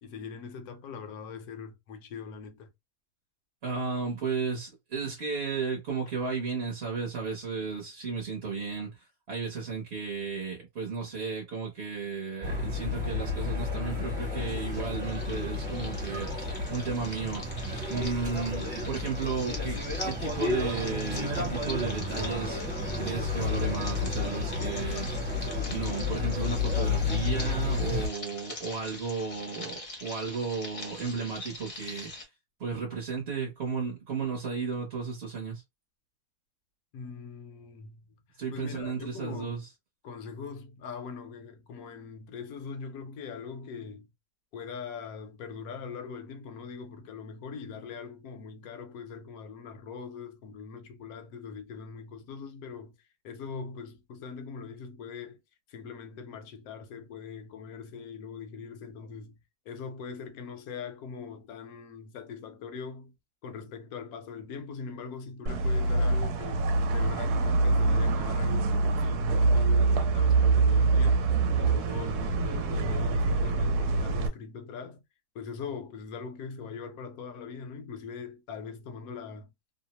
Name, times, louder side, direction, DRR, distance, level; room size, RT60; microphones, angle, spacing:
voice 1, 0.0-2.7 36.9-38.0 38.5-39.6 40.0-44.1 44.5-53.0 53.2-55.4 55.7-59.4 59.7-63.1 63.4-71.3 71.6-75.0 75.3-79.5, left 5 dB, 70° left, 1.1 m, -41 dB
voice 2, 3.6-9.0 9.3-16.3 16.7-17.5 17.9-22.6 23.0-25.1 25.7-32.3 32.6-35.6 38.4-39.7, right 5 dB, 50° right, 0.9 m, -34 dB
sound 1, 12.4-28.1, left 3 dB, 20° right, 1.0 m, -31 dB
sound 2, 14.7-32.2, left 2 dB, 35° left, 0.5 m, -44 dB
sound 3, 65.5-74.3, right 3 dB, 75° right, 1.1 m, -25 dB
2.8 x 2.0 x 2.9 m
omnidirectional pair, 1.7 m